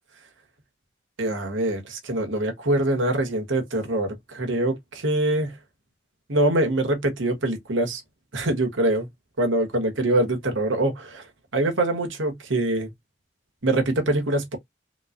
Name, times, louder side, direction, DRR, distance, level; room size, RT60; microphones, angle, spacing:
voice 1, 1.2-5.6 6.3-8.0 8.3-9.1 9.4-11.2 11.5-12.9 13.6-14.6, right 1 dB, 80° right, 1.3 m, -24 dB
3.5 x 3.1 x 2.5 m
head